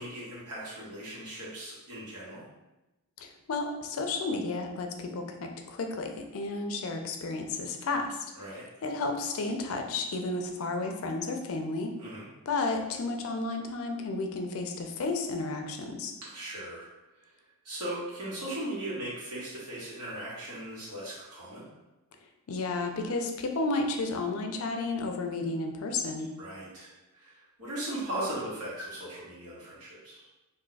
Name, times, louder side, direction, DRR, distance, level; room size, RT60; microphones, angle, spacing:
voice 1, 0.0-2.4 8.4-8.6 12.0-12.3 16.2-16.9 17.2-17.3 17.6-21.7 26.4-30.3, right 1 dB, 85° right, -7 dB, 1.3 m, -38 dB
voice 2, 3.2-8.3 8.8-11.9 12.5-16.1 22.5-26.3, left 3 dB, 65° left, 5 dB, 0.4 m, -32 dB
2.6 x 2.3 x 3.9 m, 0.99 s
head